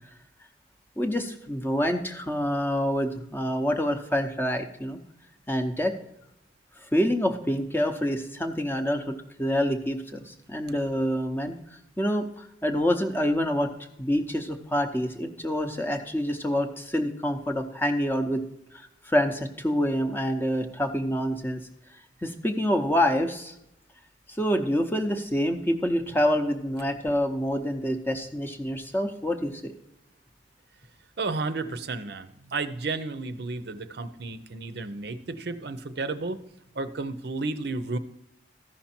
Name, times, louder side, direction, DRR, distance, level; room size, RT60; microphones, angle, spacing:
voice 1, 1.0-5.0 5.5-5.9 6.9-11.5 12.0-13.7 14.0-18.4 18.7-21.6 22.2-23.5 24.3-29.8, equal, 10° left, 6 dB, 0.7 m, -27 dB
voice 2, 31.2-36.4 36.7-38.0, right 3 dB, 60° right, 11 dB, 0.6 m, -32 dB
14.0 x 5.8 x 4.3 m, 0.83 s
head